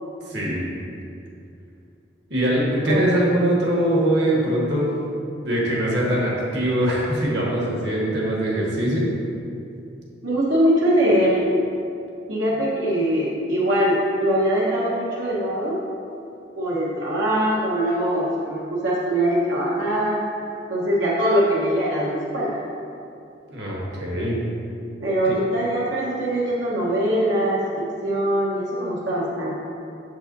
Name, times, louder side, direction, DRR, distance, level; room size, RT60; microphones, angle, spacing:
voice 1, 0.3-0.7 2.3-4.9 5.4-9.1 23.5-24.4 25.2-25.4, right 1 dB, 65° right, -4 dB, 1.4 m, -22 dB
voice 2, 10.2-11.4 12.3-15.8 16.6-20.2 20.7-22.6 25.0-29.5, right 1 dB, 85° right, -6 dB, 1.1 m, -22 dB
8.0 x 6.9 x 2.7 m, 2.6 s
head